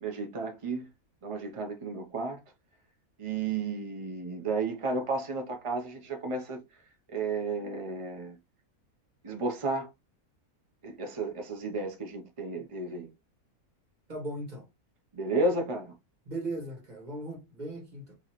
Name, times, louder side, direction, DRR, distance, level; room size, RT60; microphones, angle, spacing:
voice 1, 0.0-0.8 1.2-2.4 3.2-6.6 7.1-8.3 9.2-9.9 10.8-13.1 15.1-15.9, right 3 dB, 45° right, 0.4 m, -32 dB
voice 2, 14.1-14.7 16.3-18.1, right 2 dB, 30° right, 1.7 m, -38 dB
4.0 x 3.0 x 2.9 m
omnidirectional pair, 1.6 m